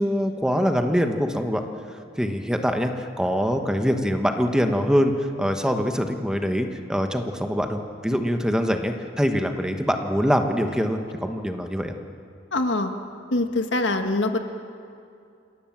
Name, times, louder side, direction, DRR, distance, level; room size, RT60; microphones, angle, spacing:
voice 1, 0.0-1.6 2.2-11.9, equal, 5° right, 5 dB, 1.2 m, -24 dB
voice 2, 12.5-12.9 13.3-14.4, left 2 dB, 75° left, 6 dB, 1.7 m, -23 dB
26.5 x 18.0 x 7.4 m, 2.5 s
head